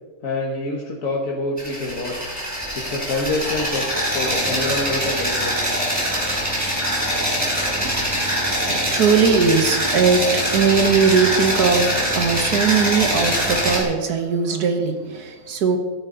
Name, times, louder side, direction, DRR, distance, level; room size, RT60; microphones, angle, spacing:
voice 1, 0.2-2.2 2.8-5.7, left 2 dB, 55° left, -3 dB, 1.8 m, -26 dB
sound 1, 1.6-13.8, equal, 10° right, 3.3 m, -23 dB
voice 2, 8.7-15.8, right 5 dB, 75° right, 6 dB, 1.7 m, -19 dB
14.5 x 8.9 x 4.0 m, 1.3 s
omnidirectional pair, 1.7 m